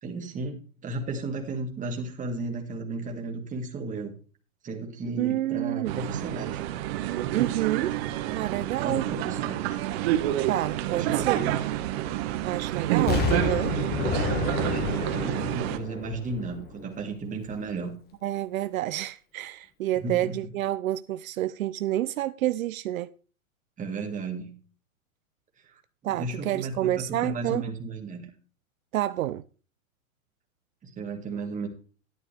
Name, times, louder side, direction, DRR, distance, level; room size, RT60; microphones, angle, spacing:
voice 1, 0.0-4.1 4.6-6.6 8.8-9.8 10.9-11.6 14.6-18.0 20.0-20.4 23.8-24.5 25.6-25.8 26.1-28.3 30.8-31.7, right 3 dB, 20° right, 2.2 m, -34 dB
voice 2, 5.2-5.9 7.3-8.0 8.3-9.1 10.5-11.5 12.4-13.8 18.2-23.1 26.0-27.6 28.9-29.4, right 14 dB, 75° right, 0.6 m, -28 dB
sound 1, 5.9-15.8, right 13 dB, 45° right, 1.4 m, -28 dB
Explosion, 13.1-17.0 17.5-17.6, left 5 dB, 25° left, 1.5 m, -30 dB
12.0 x 9.7 x 3.3 m
hypercardioid pair, 130°, 42 cm